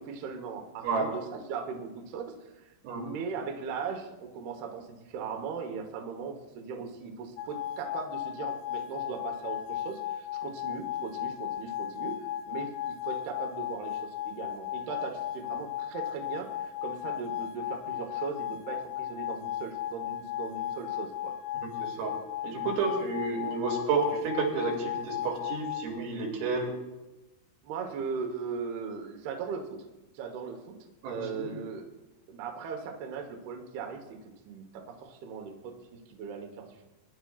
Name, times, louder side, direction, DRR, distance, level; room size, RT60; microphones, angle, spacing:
voice 1, 0.0-12.2 12.5-21.4 27.6-29.8 30.1-30.8 31.0-31.9 32.3-36.9, right 5 dB, 70° right, 2 dB, 2.7 m, -39 dB
sound 1, 7.4-25.9, left 11 dB, 85° left, 3.2 m, -36 dB
voice 2, 21.8-22.2 22.4-26.7 31.0-31.5, right 4 dB, 85° right, 0 dB, 5.1 m, -30 dB
23.5 x 11.0 x 2.4 m, 1.0 s
omnidirectional pair, 5.7 m